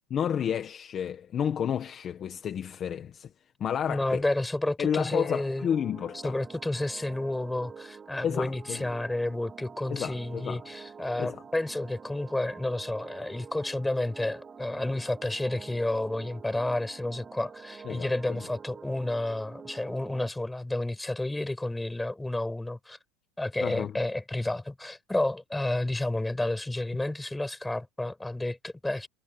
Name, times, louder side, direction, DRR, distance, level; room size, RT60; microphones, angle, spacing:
voice 1, 0.1-3.3 3.6-4.2 4.8-6.4 8.2-8.8 9.9-10.6 11.2-11.4 17.8-18.4 23.6-23.9, left 8 dB, 25° left, 1.5 m, -31 dB
voice 2, 3.9-5.7 6.2-23.0 23.4-29.1, left 2 dB, 5° left, 6.1 m, -31 dB
sound 1, 4.9-20.3, right 6 dB, 15° right, 3.6 m, -47 dB
supercardioid pair, 170°, 0 cm